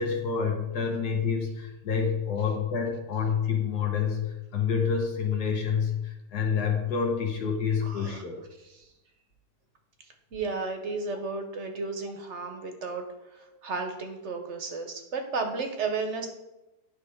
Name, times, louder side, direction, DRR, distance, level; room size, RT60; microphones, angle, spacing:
voice 1, 0.0-8.4, left 6 dB, 85° left, 1 dB, 1.6 m, -28 dB
voice 2, 7.8-8.2 8.8-8.9 10.3-13.1 13.3-16.3, right 4 dB, 55° right, 5 dB, 1.0 m, -33 dB
9.7 x 3.3 x 5.0 m, 0.98 s
omnidirectional pair, 1.6 m